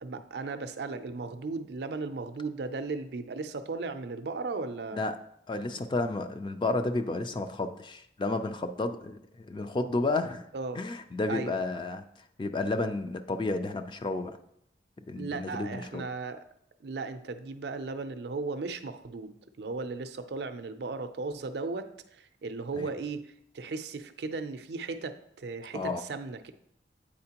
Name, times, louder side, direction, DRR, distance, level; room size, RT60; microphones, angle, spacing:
voice 1, 0.0-5.0 10.5-10.8 11.3-11.6 15.1-16.4 16.8-26.5, right 3 dB, 65° right, 9 dB, 0.4 m, -36 dB
voice 2, 5.5-10.4 10.8-12.0 12.4-14.4 15.1-16.0 22.8-22.9 25.7-26.0, left 2 dB, 25° left, 8 dB, 0.3 m, -31 dB
8.6 x 4.3 x 2.9 m, 0.73 s
head